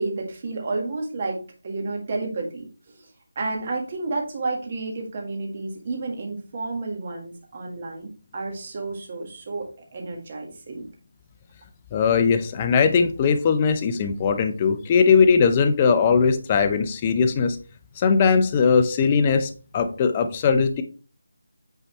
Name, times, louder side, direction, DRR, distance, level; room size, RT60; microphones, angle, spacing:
voice 1, 0.0-1.4 1.6-3.1 3.3-10.8, right 3 dB, 30° right, 1 dB, 1.7 m, -31 dB
voice 2, 11.9-17.6 18.0-20.8, left 5 dB, 20° left, 8 dB, 0.5 m, -20 dB
9.0 x 4.1 x 3.2 m, 0.37 s
figure-of-eight pair, 175°, 0 cm